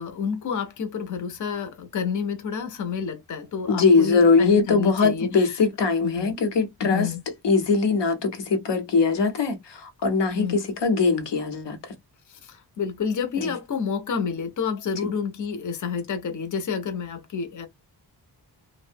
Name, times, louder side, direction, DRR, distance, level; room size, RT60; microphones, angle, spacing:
voice 1, 0.0-5.5 6.0-6.4 6.8-7.2 10.3-10.6 12.3-17.7, left 6 dB, 45° left, 0.5 m, -29 dB
voice 2, 3.7-7.1 7.4-11.9 13.4-13.5, left 4 dB, 85° left, 0.9 m, -21 dB
2.5 x 2.0 x 2.5 m
wide cardioid pair, 180°, 41 cm